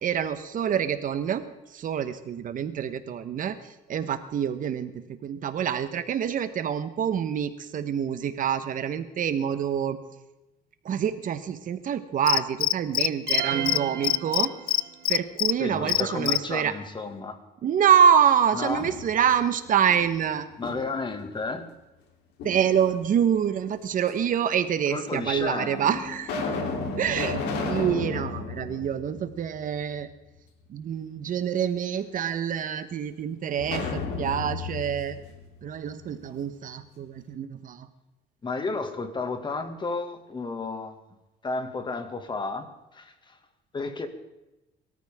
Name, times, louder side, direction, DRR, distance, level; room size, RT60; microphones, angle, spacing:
voice 1, 0.0-1.5 1.7-3.6 3.9-10.0 10.8-14.5 15.1-16.7 17.6-20.5 22.4-26.3 27.0-27.4 27.6-30.1 30.7-35.2 35.6-37.9, right 8 dB, 50° right, 11 dB, 1.2 m, -26 dB
Cricket, 12.3-13.4 13.7-13.8 14.0-15.5 15.9-16.4, left 13 dB, 60° left, 0.5 m, -23 dB
sound 1, 13.3-15.1, right 10 dB, 85° right, 2.5 m, -33 dB
voice 2, 15.6-17.4 18.5-18.9 20.6-21.7 24.9-25.8 38.4-41.0 41.4-43.4 43.7-44.1, left 3 dB, 25° left, 7 dB, 2.1 m, -32 dB
sound 2, 18.5-19.4 19.9-21.1 22.4-23.2 24.1-24.2 25.1-25.2 25.7-29.8 30.2-30.3 33.6-36.4, left 4 dB, 80° left, 3.5 m, -34 dB
23.0 x 13.5 x 3.7 m, 1.0 s
cardioid pair, 110°, 17 cm